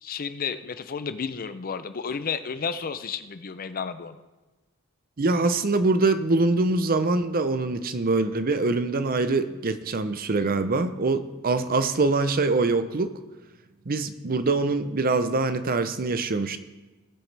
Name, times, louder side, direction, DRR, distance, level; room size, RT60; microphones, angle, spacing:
voice 1, 0.0-4.2, left 6 dB, 40° left, 11 dB, 0.5 m, -32 dB
voice 2, 5.2-13.2 13.9-16.6, right 3 dB, 40° right, 11 dB, 0.6 m, -24 dB
18.5 x 7.6 x 3.4 m, 1.2 s
head